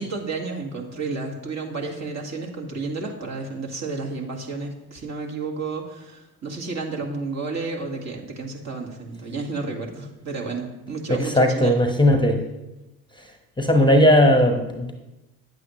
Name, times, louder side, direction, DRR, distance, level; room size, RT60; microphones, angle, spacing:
voice 1, 0.0-11.7, right 3 dB, 45° right, 0 dB, 1.9 m, -31 dB
voice 2, 11.1-12.4 13.6-14.9, left 1 dB, 10° left, 4 dB, 1.0 m, -17 dB
9.4 x 8.2 x 3.1 m, 1.0 s
supercardioid pair, 65°, 39 cm